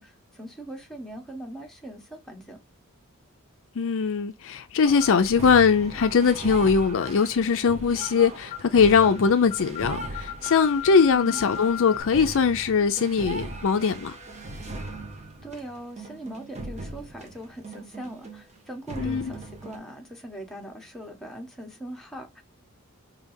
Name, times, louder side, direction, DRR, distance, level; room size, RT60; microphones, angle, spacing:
voice 1, 0.0-2.6 11.1-11.4 15.4-22.4, right 1 dB, ahead, 1.2 m, -40 dB
voice 2, 3.8-14.2 19.0-19.3, left 5 dB, 60° left, 0.5 m, -21 dB
sound 1, 4.8-18.6 18.9-19.8, right 2 dB, 30° right, 1.0 m, -39 dB
sound 2, 5.0-5.3 6.0-6.2 7.0-7.3 8.0-8.2 8.5-8.7 9.0-9.2 9.5-12.0, left 14 dB, 25° left, 0.9 m, -36 dB
5.1 x 2.8 x 2.6 m
head